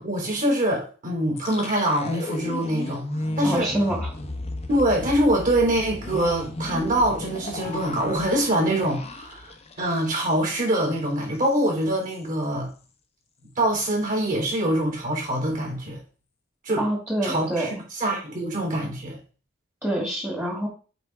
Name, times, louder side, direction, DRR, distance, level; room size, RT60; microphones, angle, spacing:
voice 1, 0.0-3.7 4.7-9.5 9.8-12.7 13.6-16.0 16.6-16.9 17.2-19.2, right 1 dB, 45° right, 0 dB, 3.6 m, -24 dB
sound 1, 1.4-10.4 10.7-10.9 11.2-11.6, left 1 dB, 30° left, 1.0 m, -34 dB
voice 2, 3.4-4.1 16.8-17.7 19.8-20.7, right 1 dB, 10° right, -1 dB, 2.0 m, -26 dB
8.1 x 3.7 x 4.7 m, 0.37 s
head